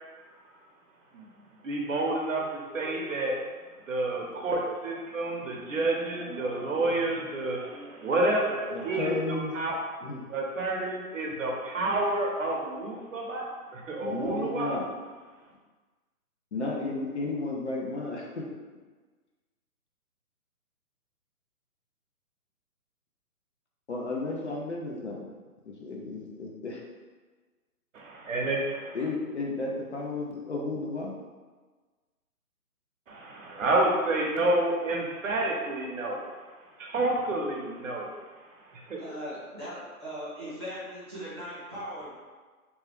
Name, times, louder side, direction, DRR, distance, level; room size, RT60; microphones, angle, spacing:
voice 1, 1.6-3.4 3.9-9.8 10.3-14.7 27.9-29.0 33.1-36.3 36.8-38.1 38.7-39.0, right 2 dB, 55° right, -1 dB, 0.7 m, -29 dB
voice 2, 8.7-9.5 10.0-10.3 14.0-14.9 16.5-18.4 23.9-25.3 25.7-26.8 28.9-31.1, left 2 dB, 50° left, -2 dB, 0.5 m, -33 dB
voice 3, 39.0-42.1, equal, 20° right, -13 dB, 0.5 m, -39 dB
2.9 x 2.2 x 3.3 m, 1.4 s
hypercardioid pair, 170°, 45 cm